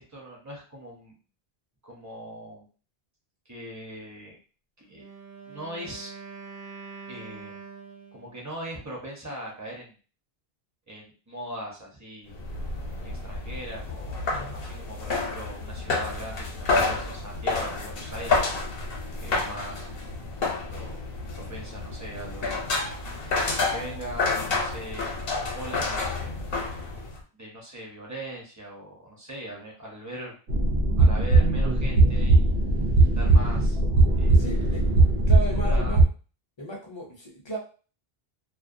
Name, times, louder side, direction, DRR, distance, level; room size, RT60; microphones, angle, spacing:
voice 1, 0.1-1.1 1.8-2.7 3.5-4.4 4.9-5.0 5.5-6.1 7.1-7.6 8.1-9.9 10.9-12.4 13.2-14.2 14.5-18.6 19.2-19.9 20.7-21.0 21.3-22.6 23.0-25.1 25.5-26.4 27.3-30.4 31.0-32.5 33.0-33.8 34.2-34.4 35.6-36.0, right 1 dB, 20° right, -2 dB, 0.6 m, -40 dB
Wind instrument woodwind instrument, 4.9-8.4, right 5 dB, 55° right, 0.3 m, -44 dB
sound 1, 12.3-27.2, left 3 dB, 70° left, 0.9 m, -30 dB
sound 2, 30.5-36.0, right 2 dB, 90° right, 0.8 m, -20 dB
voice 2, 34.3-34.8 35.3-36.0 36.6-37.6, right 1 dB, 35° left, -1 dB, 0.5 m, -35 dB
2.3 x 2.1 x 2.5 m, 0.37 s
omnidirectional pair, 1.1 m